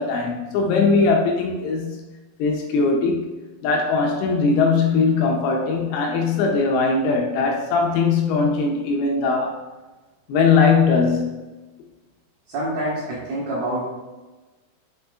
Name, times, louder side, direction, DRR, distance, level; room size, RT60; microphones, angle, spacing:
voice 1, 0.0-2.0 2.4-3.3 3.6-9.6 10.3-11.4, left 4 dB, 80° left, 1 dB, 2.9 m, -20 dB
voice 2, 12.5-13.9, right 1 dB, 65° right, -7 dB, 2.5 m, -26 dB
7.2 x 6.6 x 2.4 m, 1.2 s
omnidirectional pair, 5.9 m